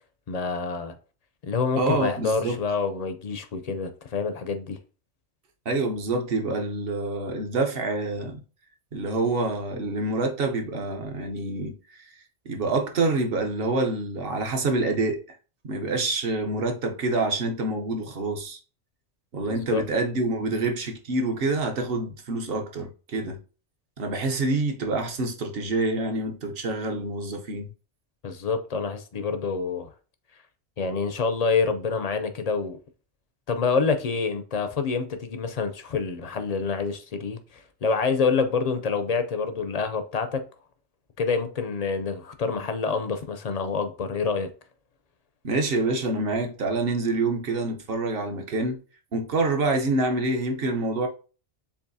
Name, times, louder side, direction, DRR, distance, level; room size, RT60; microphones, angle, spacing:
voice 1, 0.3-0.9 1.4-4.8 19.4-19.8 28.2-29.9 30.8-32.8 33.5-40.4 41.2-44.5, left 5 dB, 50° left, 0.5 m, -27 dB
voice 2, 1.8-2.6 5.6-8.4 8.9-11.8 12.5-15.4 15.6-18.6 19.3-23.4 24.0-27.7 45.4-48.8 49.1-51.1, right 2 dB, 60° right, 1.0 m, -27 dB
7.1 x 2.6 x 2.6 m
omnidirectional pair, 1.2 m